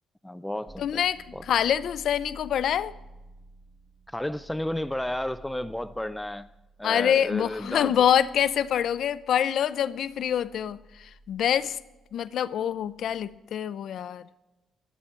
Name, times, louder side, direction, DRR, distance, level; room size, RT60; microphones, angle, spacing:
voice 1, 0.2-1.0 1.3-1.4 4.1-6.5 6.8-8.1, left 1 dB, 5° left, 0.4 m, -32 dB
sound 1, 0.7-13.4, right 1 dB, 25° right, 1.3 m, -51 dB
voice 2, 0.8-1.2 1.5-2.9 6.8-11.8 12.1-14.2, left 9 dB, 70° left, 0.5 m, -25 dB
23.5 x 8.3 x 4.4 m
cardioid pair, 90°, 0 cm